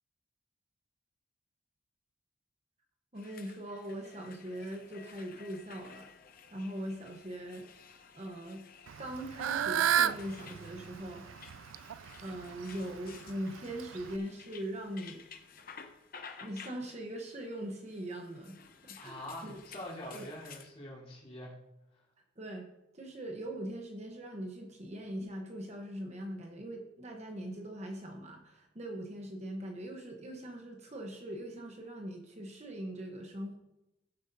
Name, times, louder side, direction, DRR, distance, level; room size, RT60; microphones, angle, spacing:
sound 1, 3.1-20.7, left 6 dB, 45° left, 0.8 m, -54 dB
voice 1, 3.1-6.1 6.5-7.7 8.1-8.6 9.0-11.3 12.2-15.2 16.4-18.6 18.8-19.6 20.1-20.2 22.4-22.7 22.9-33.5, right 1 dB, 35° right, 2 dB, 1.0 m, -41 dB
Fowl / Bird, 8.9-14.2, right 9 dB, 80° right, 0.4 m, -33 dB
voice 2, 19.0-21.5 21.9-22.0, left 1 dB, 30° left, -5 dB, 3.9 m, -44 dB
15.5 x 8.0 x 2.7 m, 0.91 s
head